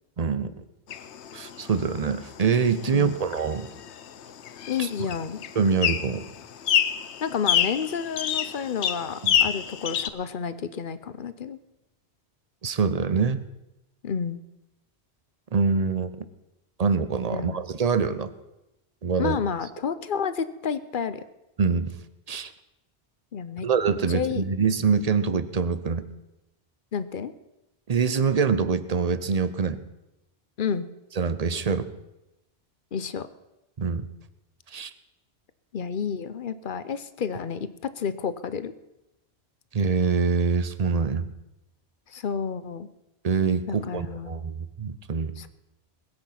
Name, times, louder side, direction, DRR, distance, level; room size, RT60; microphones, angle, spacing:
voice 1, 0.2-0.5 1.3-3.7 4.8-4.9 5.5-6.2 9.2-9.4 12.6-13.4 15.5-16.1 16.8-18.3 19.0-19.4 21.6-22.0 22.3-22.5 23.6-26.1 27.9-29.8 31.2-31.9 33.8-34.1 34.7-34.9 39.7-41.3 43.2-45.3, right 5 dB, 40° right, 13 dB, 0.8 m, -25 dB
sound 1, 0.9-10.1, left 9 dB, 80° left, 1.0 m, -29 dB
voice 2, 4.7-5.4 7.2-11.6 14.0-14.4 17.3-17.6 19.2-21.2 23.3-23.7 24.1-24.4 26.9-27.3 30.6-30.9 32.9-33.3 35.7-38.7 42.1-42.9 43.7-44.4 45.4-45.5, left 7 dB, 55° left, 13 dB, 0.8 m, -30 dB
20.5 x 8.0 x 5.8 m, 0.94 s
omnidirectional pair, 1.1 m